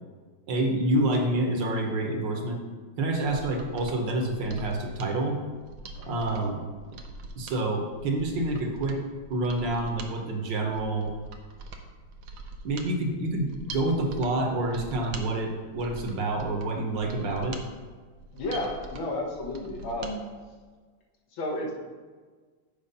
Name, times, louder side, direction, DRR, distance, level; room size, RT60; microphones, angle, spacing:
voice 1, 0.5-2.6 3.0-5.4 6.1-6.6 7.4-9.0 9.3-11.1 12.6-17.6, right 2 dB, 65° right, 2 dB, 1.6 m, -28 dB
Mechanisms, 3.1-20.2 20.5-20.6, right 3 dB, 90° right, 1.6 m, -43 dB
voice 2, 18.3-20.2 21.3-21.7, left 1 dB, 75° left, -1 dB, 2.0 m, -32 dB
7.1 x 4.6 x 5.3 m, 1.4 s
omnidirectional pair, 2.2 m